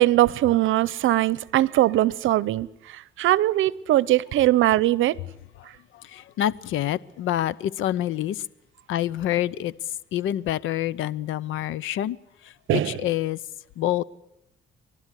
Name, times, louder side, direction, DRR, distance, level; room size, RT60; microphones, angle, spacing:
voice 1, 0.0-5.2 12.7-13.0, right 15 dB, 80° right, 0.8 m, -21 dB
voice 2, 6.1-8.4 8.9-9.7 10.1-12.2 12.7-13.4 13.8-14.0, left 12 dB, 85° left, 0.8 m, -26 dB
30.0 x 12.0 x 9.9 m
cardioid pair, 90°, 20 cm